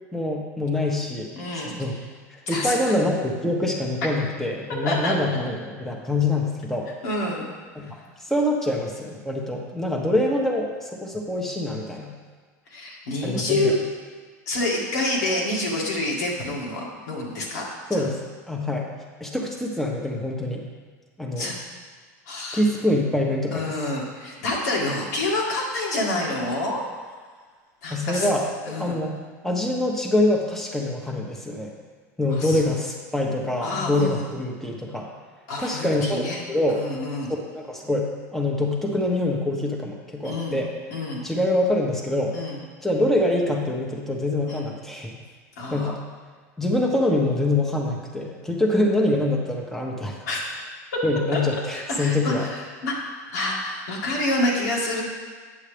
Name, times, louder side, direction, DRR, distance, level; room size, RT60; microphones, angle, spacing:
voice 1, 0.1-2.0 2.5-6.9 7.7-8.0 8.3-12.1 13.2-13.7 17.9-18.2 18.5-18.9 19.2-20.6 21.2-21.5 22.5-23.8 27.9-29.2 29.4-31.7 32.2-35.1 35.6-36.8 37.5-40.7 41.2-42.3 42.8-45.2 45.7-46.0 46.6-50.3 51.0-52.5, left 1 dB, 5° left, -1 dB, 1.1 m, -25 dB
voice 2, 1.4-1.7 2.5-3.0 4.8-5.1 7.0-7.4 12.7-13.8 14.5-17.6 17.9-18.0 21.4-21.6 22.3-22.6 23.5-26.8 27.8-28.3 28.7-29.0 32.3-32.6 33.6-34.3 35.5-36.4 36.7-37.3 40.2-40.6 40.9-41.2 42.3-42.6 44.5-44.7 45.6-45.9 50.3-50.4 51.3-51.4 51.7-53.0 53.3-55.0, left 1 dB, 85° left, -4 dB, 2.1 m, -27 dB
8.6 x 7.2 x 3.4 m, 1.5 s
supercardioid pair, 105°, 9 cm